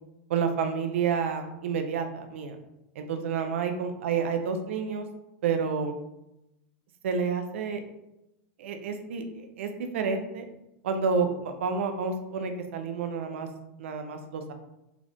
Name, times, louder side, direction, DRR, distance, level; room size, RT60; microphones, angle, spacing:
voice 1, 0.3-2.6 3.0-5.1 5.4-6.0 7.0-7.8 8.6-10.5 10.8-13.5 13.8-14.5, right 5 dB, 80° right, 6 dB, 0.6 m, -29 dB
3.8 x 2.5 x 3.4 m, 0.89 s
supercardioid pair, 125°, 7 cm